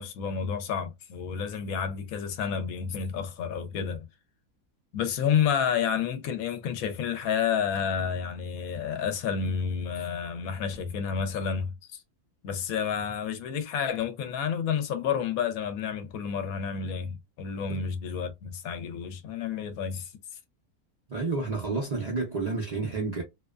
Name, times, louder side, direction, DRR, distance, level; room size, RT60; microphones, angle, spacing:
voice 1, 0.0-4.1 4.9-12.0 12.4-20.1, left 7 dB, 75° left, 1.0 m, -30 dB
voice 2, 21.1-23.2, right 3 dB, 70° right, 0.3 m, -30 dB
2.6 x 2.1 x 2.3 m
omnidirectional pair, 1.6 m